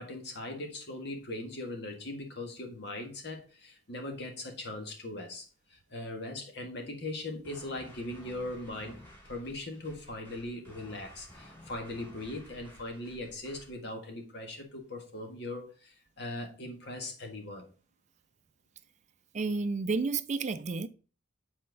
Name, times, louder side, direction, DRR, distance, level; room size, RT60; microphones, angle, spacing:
voice 1, 0.0-5.4 5.7-9.0 9.2-17.7, left 2 dB, 65° left, 1.7 m, -40 dB
sound 1, 7.4-13.8, equal, 10° left, 3.0 m, -53 dB
voice 2, 19.3-20.9, right 4 dB, 40° right, 0.4 m, -31 dB
7.5 x 4.3 x 4.0 m
head